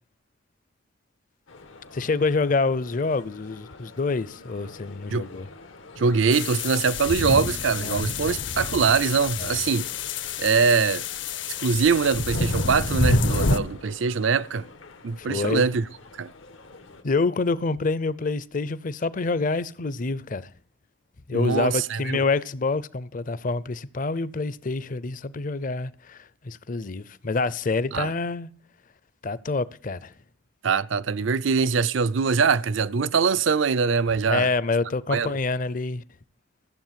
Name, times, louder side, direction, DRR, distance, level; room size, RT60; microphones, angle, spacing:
sound 1, 1.5-17.0, left 3 dB, 90° left, 1.5 m, -47 dB
voice 1, 1.9-5.5 7.8-8.3 9.4-9.6 15.2-15.7 17.0-20.4 21.3-28.5 29.2-30.1 34.3-36.0, left 3 dB, 45° left, 0.6 m, -27 dB
voice 2, 6.0-9.8 10.4-11.0 11.6-14.7 15.0-15.8 16.2-16.3 21.3-22.2 27.9-28.1 30.6-34.5 35.1-35.3, right 5 dB, 75° right, 0.5 m, -23 dB
sound 2, 6.3-13.6, left 3 dB, 70° left, 0.9 m, -27 dB
14.5 x 7.3 x 7.4 m
head